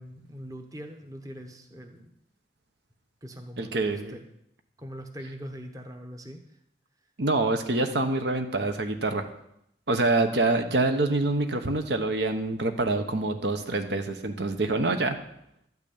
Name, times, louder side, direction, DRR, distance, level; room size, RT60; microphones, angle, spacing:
voice 1, 0.0-2.1 3.2-4.2 4.8-6.4, equal, 20° right, 4 dB, 1.0 m, -42 dB
voice 2, 3.6-4.2 7.2-9.3 9.9-15.2, right 2 dB, 65° right, 7 dB, 1.0 m, -26 dB
12.0 x 6.0 x 8.6 m, 0.77 s
head